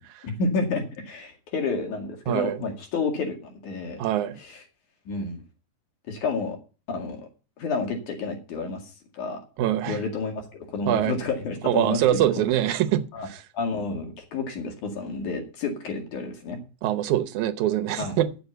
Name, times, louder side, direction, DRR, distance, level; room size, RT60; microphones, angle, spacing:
voice 1, 0.2-4.0 4.4-4.6 5.1-5.4 6.1-6.6 6.9-7.2 7.6-9.4 9.9-12.4 13.1-13.3 13.5-16.6 18.0-18.2, left 4 dB, 75° left, 3.6 m, -30 dB
voice 2, 2.3-2.6 4.0-4.4 9.6-10.0 10.9-11.2 11.6-13.0 13.3-13.4 16.8-18.3, right 12 dB, 75° right, 2.2 m, -24 dB
9.5 x 7.0 x 7.9 m
omnidirectional pair, 3.5 m